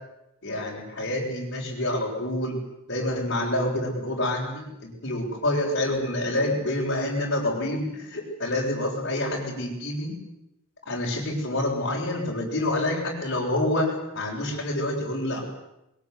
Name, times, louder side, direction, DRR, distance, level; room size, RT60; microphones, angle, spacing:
voice 1, 0.4-2.5 2.9-10.1 10.9-15.5, left 1 dB, 55° left, -4 dB, 7.8 m, -27 dB
22.5 x 22.0 x 9.8 m, 0.88 s
head